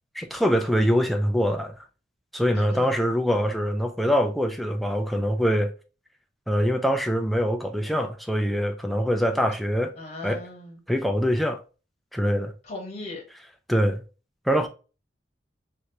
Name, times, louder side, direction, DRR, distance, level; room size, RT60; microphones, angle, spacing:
voice 1, 0.1-1.8 2.3-5.7 6.5-9.9 10.2-10.4 10.9-11.6 12.1-12.5 13.7-14.0 14.5-14.7, equal, ahead, 0.4 m, -24 dB
voice 2, 2.5-2.9 10.0-10.8 12.6-13.2, left 2 dB, 40° left, 1.0 m, -38 dB
3.2 x 2.5 x 2.7 m
head